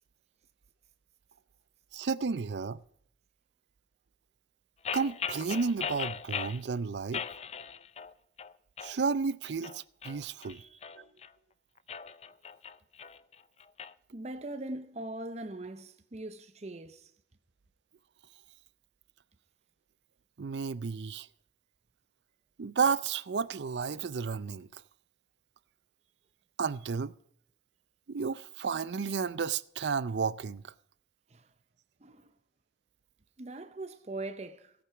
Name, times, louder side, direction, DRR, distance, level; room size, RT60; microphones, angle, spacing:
voice 1, 1.9-2.8 4.9-7.4 8.8-10.6 11.0-11.1 20.4-21.3 22.6-24.8 26.6-27.1 28.1-30.7, right 5 dB, 75° right, 0.5 m, -32 dB
sound 1, 4.8-6.6 7.1-8.1 8.4-9.0 9.4-11.3 11.8-13.9, left 7 dB, 35° left, 0.4 m, -39 dB
voice 2, 10.5-10.9 14.1-17.1 31.3-31.5 32.0-32.3 33.4-34.7, right 2 dB, 40° right, 0.7 m, -41 dB
17.0 x 8.8 x 4.9 m
head